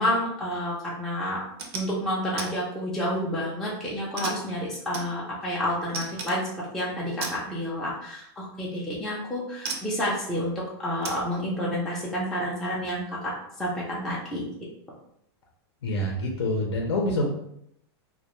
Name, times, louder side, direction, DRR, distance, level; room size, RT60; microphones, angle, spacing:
voice 1, 0.0-1.4 1.7-10.5 10.8-14.5, equal, ahead, -6 dB, 0.3 m, -29 dB
sound 1, 1.4-1.9 2.4-2.5 2.9-3.4 4.2-5.5 5.9-6.4 7.2-7.4 8.7-8.9 9.7-10.0 11.0-11.2, right 4 dB, 70° right, 0.5 m, -35 dB
voice 2, 15.8-17.3, left 1 dB, 90° left, -1 dB, 0.6 m, -26 dB
2.2 x 2.1 x 2.9 m, 0.74 s
supercardioid pair, 155°, 14 cm